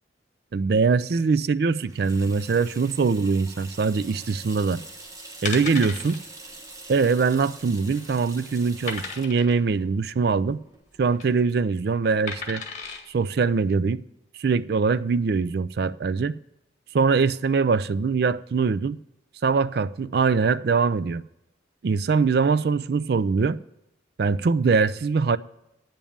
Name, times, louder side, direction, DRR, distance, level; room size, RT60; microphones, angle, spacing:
voice 1, 0.5-4.8 5.4-6.2 6.9-10.6 11.0-12.6 13.1-14.0 14.4-16.4 16.9-19.0 19.4-21.2 21.8-23.6 24.2-25.4, right 5 dB, 55° right, 0.4 m, -22 dB
Water tap faucet / Sink (filling or washing), 1.8-11.2, right 2 dB, 15° right, 1.0 m, -45 dB
sound 1, 5.4-6.2 6.5-6.7 6.9-7.0 7.6-8.1 8.9-9.6 10.9-11.3 12.3-13.0 13.6-13.7, left 4 dB, 40° left, 1.8 m, -34 dB
9.0 x 7.2 x 7.0 m
head